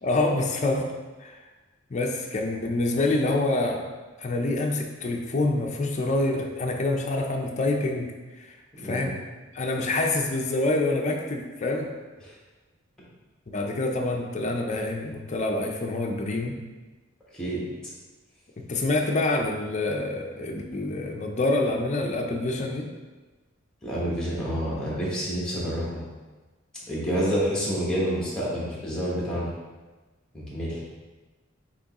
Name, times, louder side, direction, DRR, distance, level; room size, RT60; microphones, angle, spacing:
voice 1, 0.0-0.9 1.2-1.4 1.9-3.8 4.2-8.5 8.8-9.2 9.5-11.9 13.5-16.6 18.6-22.9, left 2 dB, 35° left, 2 dB, 0.5 m, -26 dB
voice 2, 23.8-26.0 26.9-29.5 30.3-30.8, equal, 5° left, -6 dB, 1.1 m, -28 dB
6.1 x 3.0 x 2.9 m, 1.2 s
head